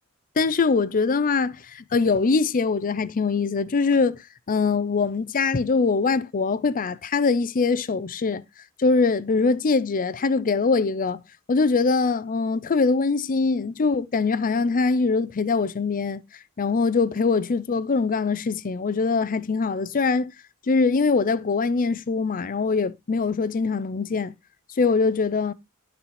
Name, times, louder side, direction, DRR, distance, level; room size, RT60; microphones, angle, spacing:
voice 1, 0.4-4.2 4.5-8.4 8.8-11.2 11.5-16.2 16.6-20.3 20.7-24.3 24.8-25.5, left 4 dB, 40° left, 0.5 m, -23 dB
11.0 x 4.1 x 4.1 m
head